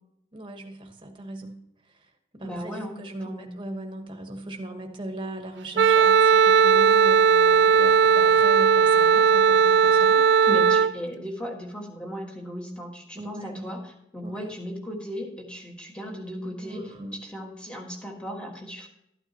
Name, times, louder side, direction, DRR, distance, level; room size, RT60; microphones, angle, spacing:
voice 1, 0.3-1.6 1.8-10.8 13.2-13.7 14.2-14.5 16.6-17.2, right 1 dB, 25° right, 3 dB, 1.3 m, -39 dB
voice 2, 2.4-3.5 10.5-13.8 14.1-18.9, equal, 5° left, 0 dB, 1.6 m, -36 dB
Wind instrument woodwind instrument, 5.8-10.9, right 6 dB, 70° right, 0.3 m, -17 dB
13.0 x 9.0 x 3.0 m, 0.79 s
head